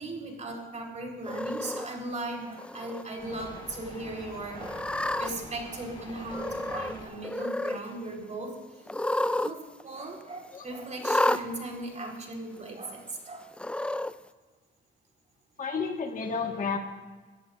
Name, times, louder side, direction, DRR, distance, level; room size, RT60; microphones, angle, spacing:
voice 1, 0.0-4.8 5.2-8.8 9.4-13.5, right 2 dB, 35° right, 0 dB, 4.1 m, -38 dB
Cat, 1.3-1.9 2.6-3.0 3.4-3.5 4.6-5.3 6.3-7.0 7.2-7.8 8.9-9.5 9.8-9.9 11.0-11.4 12.3-12.4 13.5-14.1, left 1 dB, 5° left, 0.4 m, -30 dB
sound 1, 1.7-7.1, left 1 dB, 25° left, 5.3 m, -46 dB
voice 2, 15.6-16.8, left 5 dB, 40° left, 3 dB, 1.6 m, -31 dB
22.0 x 14.0 x 2.5 m, 1.3 s
cardioid pair, 90°, 20 cm